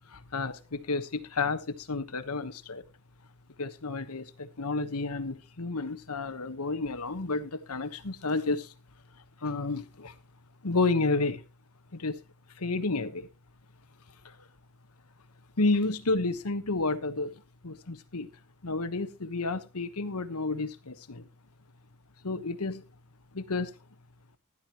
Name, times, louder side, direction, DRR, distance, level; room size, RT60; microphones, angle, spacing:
voice 1, 0.1-2.8 3.6-8.7 9.4-10.2 10.6-11.4 11.9-12.1 12.6-13.3 14.2-14.3 15.6-17.3 17.6-18.3 18.6-21.3 22.2-22.8 23.3-23.7, left 3 dB, 85° left, 1.2 m, -31 dB
15.5 x 11.0 x 3.0 m
head